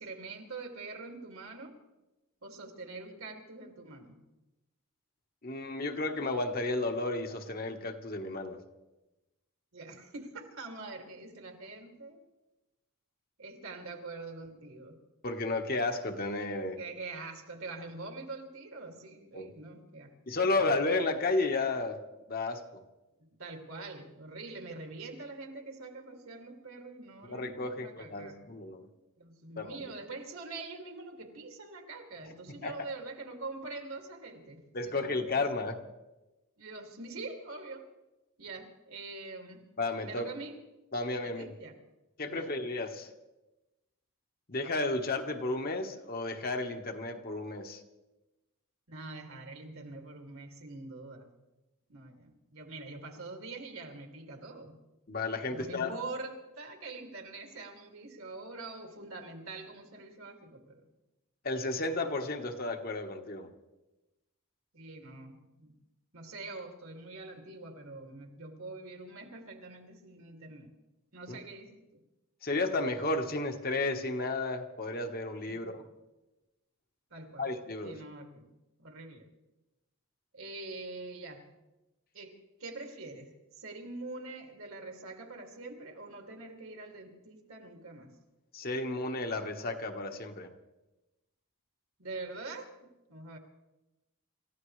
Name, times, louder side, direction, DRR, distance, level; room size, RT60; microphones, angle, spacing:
voice 1, 0.0-1.8 2.4-4.2 9.7-12.2 13.4-15.0 16.8-20.4 23.4-28.4 29.2-35.6 36.6-37.9 38.4-39.7 40.0-40.6 41.2-41.8 42.3-42.5 48.9-51.3 51.9-54.8 55.5-60.9 64.7-65.7 66.1-70.7 71.1-72.0 75.4-75.9 77.1-77.5 77.8-78.4 78.8-79.3 80.3-81.5 82.1-88.1 92.0-92.7 93.1-93.4, right 3 dB, 70° right, 3 dB, 2.5 m, -44 dB
voice 2, 5.4-8.6 15.2-16.8 19.3-19.5 20.3-22.0 22.3-22.6 27.2-28.8 29.6-29.8 32.6-32.7 34.7-35.8 39.8-40.3 40.9-41.5 42.2-43.1 44.5-47.8 55.1-55.9 61.4-63.5 71.3-71.4 72.4-75.8 77.4-78.0 88.5-90.5, left 2 dB, 40° left, 4 dB, 1.2 m, -32 dB
28.0 x 15.0 x 3.2 m, 1.0 s
head